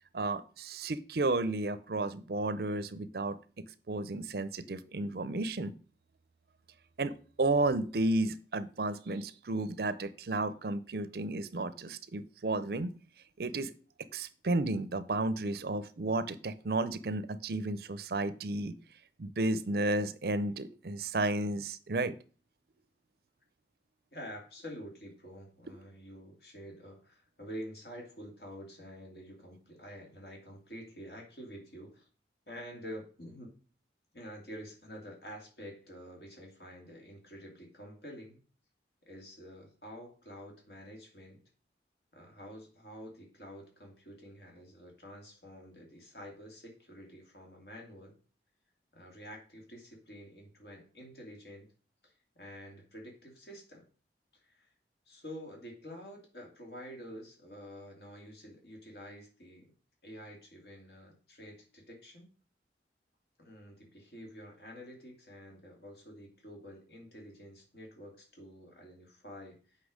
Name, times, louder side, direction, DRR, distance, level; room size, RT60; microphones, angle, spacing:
voice 1, 0.1-3.4 3.9-5.7 7.0-7.1 7.4-12.9 13.4-13.7 14.0-18.7 19.2-22.2, right 2 dB, 55° right, 14 dB, 0.5 m, -32 dB
voice 2, 24.1-32.0 32.5-33.5 34.1-38.4 39.1-41.4 42.1-48.2 48.9-51.7 52.0-53.8 54.4-54.7 55.1-59.7 60.0-62.3 63.4-69.8, equal, 60° left, 0 dB, 2.6 m, -48 dB
8.1 x 5.6 x 5.0 m, 0.39 s
head